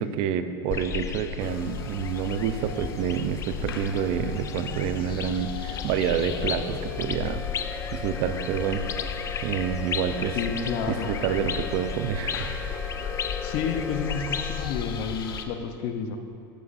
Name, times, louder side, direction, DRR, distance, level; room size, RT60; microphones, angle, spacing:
voice 1, 0.0-7.4 7.9-8.8 9.4-10.4 10.9-12.5, right 8 dB, 50° right, 10 dB, 0.6 m, -28 dB
sound 1, 0.7-15.4, left 8 dB, 25° left, 0.4 m, -34 dB
sound 2, 1.4-15.5, left 6 dB, 85° left, 0.9 m, -41 dB
sound 3, 6.8-14.7, left 2 dB, 5° left, 0.9 m, -39 dB
voice 2, 10.3-11.2 13.4-16.2, left 6 dB, 50° left, 7 dB, 0.8 m, -30 dB
15.0 x 7.8 x 2.6 m, 2.6 s
hypercardioid pair, 110°, 12 cm